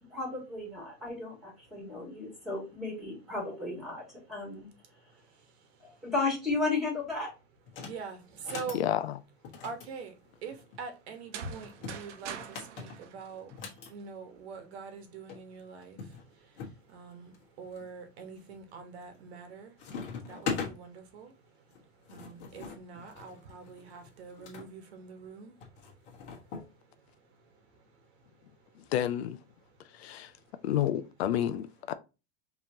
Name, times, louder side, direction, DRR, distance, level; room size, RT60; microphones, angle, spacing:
voice 1, 0.1-4.0 4.3-4.7 5.8-7.3, left 3 dB, ahead, 1.9 m, -34 dB
voice 2, 1.7-2.5 4.9-6.1 7.7-8.8 9.5-28.9 29.6-30.6, right 5 dB, 65° right, 1.2 m, -46 dB
sound 1, 7.7-8.0 8.4-8.8 9.4-10.8 11.6-13.9 15.0-15.1 15.3-15.4 16.0-16.8 17.3-17.8 18.4-18.8 19.1-19.5 19.8-20.7 21.7-24.7 25.6-26.7, left 5 dB, 50° left, 1.5 m, -41 dB
voice 3, 8.7-9.2 28.9-29.4 29.9-30.3 30.6-31.9, left 11 dB, 65° left, 0.5 m, -30 dB
sound 2, 11.1-14.0, right 8 dB, 85° right, 0.9 m, -44 dB
5.3 x 3.1 x 2.8 m
supercardioid pair, 180°, 35 cm